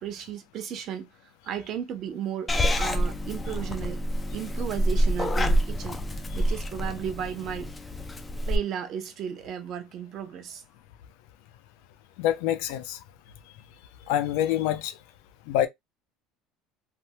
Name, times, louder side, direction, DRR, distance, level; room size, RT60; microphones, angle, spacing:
voice 1, 0.0-4.0 4.3-7.7 8.5-10.6, right 9 dB, 35° right, 0.6 m, -35 dB
Purr / Meow, 2.5-8.6, equal, 10° left, 0.3 m, -27 dB
voice 2, 12.2-13.0 14.1-14.9 15.5-15.7, left 11 dB, 70° left, 0.5 m, -26 dB
3.3 x 2.2 x 2.7 m
cardioid pair, 175°, 0 cm